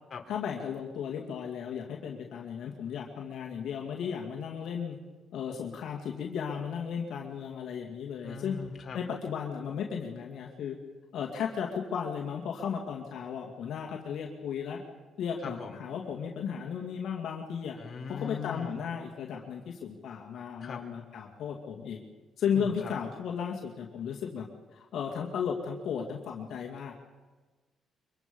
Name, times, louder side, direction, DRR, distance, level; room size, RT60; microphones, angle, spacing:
voice 1, 0.3-5.0 5.3-8.6 8.9-10.8 11.1-14.8 15.2-17.8 18.1-22.0 22.4-26.9, left 7 dB, 75° left, 0 dB, 2.3 m, -35 dB
voice 2, 8.2-9.0 15.4-15.8 17.8-18.8 20.6-20.8 22.5-22.9, left 6 dB, 45° left, 2 dB, 3.5 m, -40 dB
24.0 x 23.5 x 5.5 m, 1.3 s
cardioid pair, 90°, 0 cm